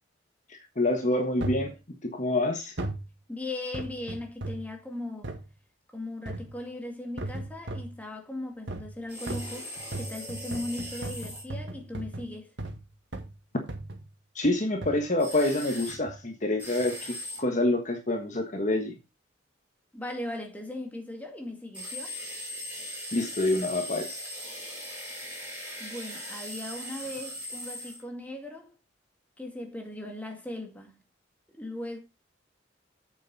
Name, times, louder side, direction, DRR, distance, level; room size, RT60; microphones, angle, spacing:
voice 1, 0.5-1.8 2.0-2.7 14.3-18.9 23.1-24.2, left 2 dB, 40° left, 1.4 m, -27 dB
sound 1, 1.4-1.7 2.8-3.1 3.7-4.7 5.2-5.5 6.3-6.6 7.2-8.0 8.7-9.0 9.3-12.8 13.1-13.4 13.7-14.1 14.8-15.0 15.9-16.2 16.8-16.9, right 2 dB, 75° right, 1.9 m, -37 dB
voice 2, 3.3-5.3 5.9-12.5 19.9-22.1 25.8-28.7 29.4-31.0 31.5-32.0, left 1 dB, 10° left, 2.4 m, -38 dB
sound 2, 9.1-11.4 15.2-16.0 16.6-17.4 21.7-28.0, left 1 dB, 10° right, 5.0 m, -39 dB
8.7 x 7.2 x 4.1 m
head